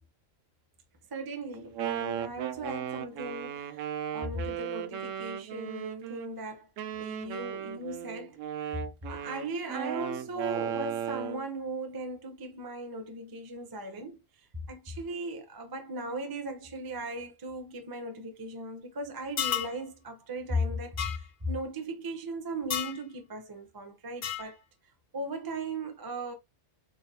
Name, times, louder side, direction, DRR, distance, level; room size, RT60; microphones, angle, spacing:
voice 1, 1.1-3.9 4.1-6.7 6.9-8.4 8.6-8.8 9.1-14.2 14.7-24.6 25.1-26.3, right 1 dB, 25° right, 0.5 m, -37 dB
Wind instrument woodwind instrument, 1.5-6.3 6.8-11.5, right 9 dB, 75° right, 0.9 m, -36 dB
sound 1, 19.4-19.8 21.0-21.2 22.7-23.0 24.2-24.5, left 9 dB, 60° left, 0.5 m, -31 dB
4.0 x 2.1 x 4.0 m
omnidirectional pair, 1.4 m